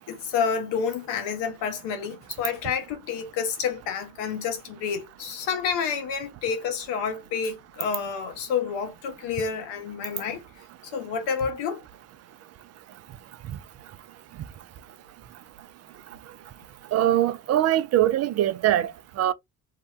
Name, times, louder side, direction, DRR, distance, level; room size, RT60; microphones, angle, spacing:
voice 1, 0.1-10.4 10.9-11.8, left 6 dB, 70° left, 1.1 m, -29 dB
voice 2, 16.9-18.9 19.2-19.3, right 12 dB, 40° right, 0.4 m, -22 dB
2.7 x 2.2 x 3.1 m
supercardioid pair, 75°, 44 cm